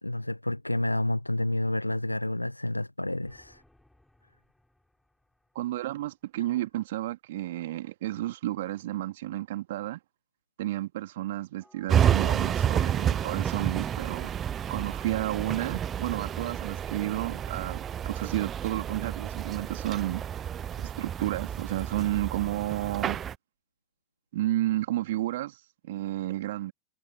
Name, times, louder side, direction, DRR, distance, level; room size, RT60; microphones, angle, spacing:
voice 1, 0.0-3.6, left 1 dB, 85° left, 1.4 m, -29 dB
sound 1, 3.2-6.1 11.6-18.0, left 1 dB, 5° left, 7.7 m, -59 dB
voice 2, 5.5-10.0 10.6-14.3 14.7-20.2 20.8-23.2 24.3-26.7, right 15 dB, 55° right, 2.5 m, -31 dB
sound 2, 11.9-23.4, right 9 dB, 25° right, 0.4 m, -30 dB
figure-of-eight pair, 90°, 0 cm